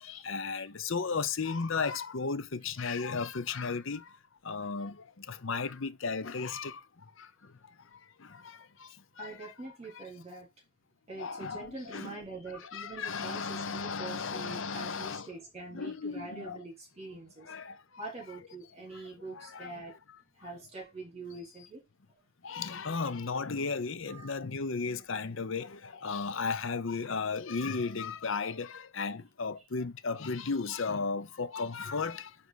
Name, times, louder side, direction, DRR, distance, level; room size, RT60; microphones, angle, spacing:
voice 1, 0.0-4.2 4.4-7.5 7.9-9.5 9.9-10.0 11.2-12.2 12.6-15.3 15.7-16.6 17.4-18.1 18.9-20.0 22.4-32.4, left 4 dB, 60° left, 0.7 m, -35 dB
voice 2, 9.2-10.5 11.1-17.5 18.0-19.9 20.4-21.8 24.1-24.4, right 3 dB, 30° right, 3.6 m, -44 dB
9.4 x 3.5 x 4.2 m
head